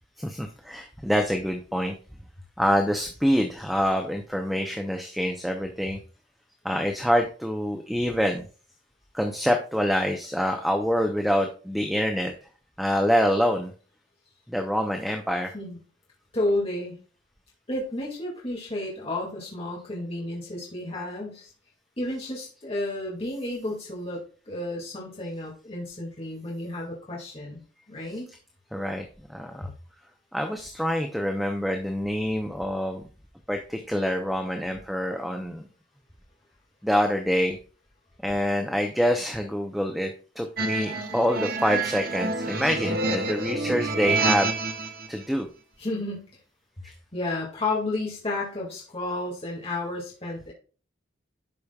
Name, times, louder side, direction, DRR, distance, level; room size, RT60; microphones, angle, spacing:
voice 1, 0.2-1.9 2.6-6.0 6.6-8.4 9.1-12.3 12.8-13.7 14.5-15.5 28.0-28.4 28.7-29.0 29.3-29.7 30.3-33.0 33.5-35.7 36.8-37.6 38.2-44.5 45.1-45.5 46.8-46.9, equal, ahead, 4 dB, 0.7 m, -26 dB
voice 2, 16.3-16.9 17.7-21.5 22.0-24.2 24.5-27.6 27.9-28.3 45.8-46.3 47.1-50.5, left 2 dB, 30° left, -4 dB, 2.1 m, -31 dB
sound 1, 40.6-45.1, right 3 dB, 50° right, 1.2 m, -28 dB
12.0 x 5.1 x 2.3 m, 0.37 s
head